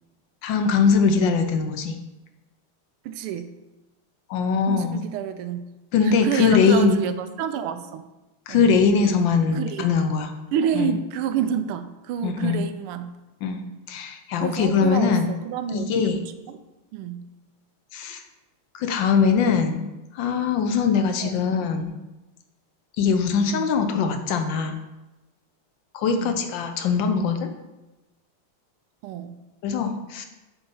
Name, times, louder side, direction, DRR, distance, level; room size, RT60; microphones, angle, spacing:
voice 1, 0.4-1.9 4.3-5.0 5.9-7.0 8.5-10.3 10.7-10.9 12.2-12.6 13.4-15.3 15.7-16.2 17.9-18.2 18.7-19.9 20.1-21.9 23.0-24.7 25.9-27.5 29.6-30.3, left 5 dB, 70° left, 6 dB, 1.3 m, -21 dB
voice 2, 3.0-3.5 4.7-5.6 6.0-8.0 8.5-8.6 9.5-9.9 10.5-13.1 14.4-16.2 16.5-16.6 16.9-17.2 21.2-21.5 23.4-23.7 26.1-26.4 29.0-29.4, right 8 dB, 90° right, 10 dB, 1.5 m, -29 dB
7.8 x 4.0 x 5.5 m, 1.0 s
omnidirectional pair, 2.4 m